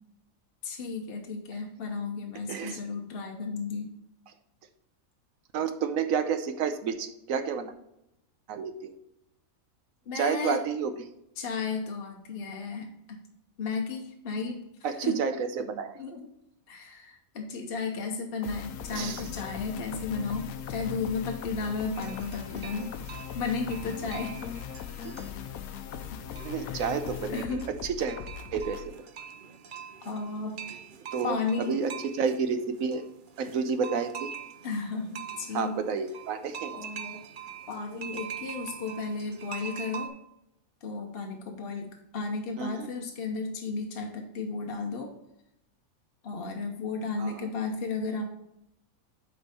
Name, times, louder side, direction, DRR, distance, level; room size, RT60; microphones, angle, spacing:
voice 1, 0.6-3.9 10.1-10.6 11.4-13.2 13.6-15.2 16.0-16.3 16.7-22.9 23.3-24.5 26.6-26.9 27.3-27.7 30.0-30.6 31.2-31.8 34.6-35.7 36.6-37.2 37.7-40.1 40.8-45.1 46.2-48.3, left 4 dB, 45° left, 2 dB, 1.0 m, -34 dB
voice 2, 2.5-2.8 5.5-7.7 8.5-9.0 10.1-10.9 14.8-15.9 18.9-19.2 26.4-28.2 28.5-28.9 31.1-33.0 33.4-34.3 35.5-36.8 42.6-42.9 47.2-47.5, right 6 dB, 70° right, 9 dB, 1.1 m, -30 dB
sound 1, 18.4-28.9, left 9 dB, 75° left, 1.0 m, -39 dB
sound 2, 21.9-40.1, right 8 dB, 55° right, 0.6 m, -44 dB
8.4 x 4.5 x 4.2 m, 0.84 s
omnidirectional pair, 1.5 m